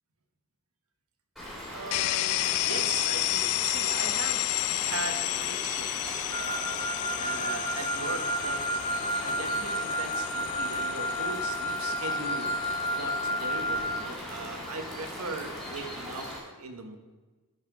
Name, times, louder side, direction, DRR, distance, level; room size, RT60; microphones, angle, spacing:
sound 1, 1.4-16.4, equal, ahead, 3.4 m, -40 dB
voice 1, 1.7-4.5 4.8-6.8 7.2-8.8 9.2-12.5 12.9-17.0, right 4 dB, 85° right, 6 dB, 1.2 m, -39 dB
sound 2, 1.9-15.6, left 16 dB, 75° left, 0.3 m, -32 dB
Wind instrument woodwind instrument, 6.3-14.1, equal, 20° left, 1.2 m, -31 dB
12.0 x 5.8 x 4.8 m, 1.3 s
head